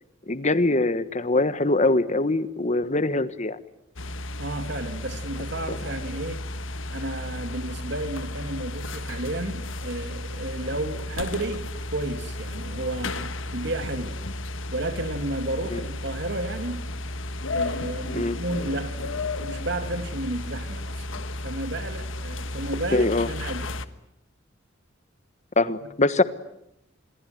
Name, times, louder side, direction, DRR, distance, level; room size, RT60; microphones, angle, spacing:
voice 1, 0.3-3.6 15.7-15.8 18.1-18.4 22.9-23.3 25.6-26.2, left 2 dB, 35° left, 14 dB, 1.3 m, -23 dB
sound 1, 4.0-23.9, left 2 dB, 75° left, 1.4 m, -33 dB
voice 2, 4.4-6.4 6.9-14.2 14.7-16.9 17.5-23.8, right 2 dB, 60° right, 8 dB, 2.7 m, -32 dB
27.5 x 22.0 x 9.3 m, 0.80 s
head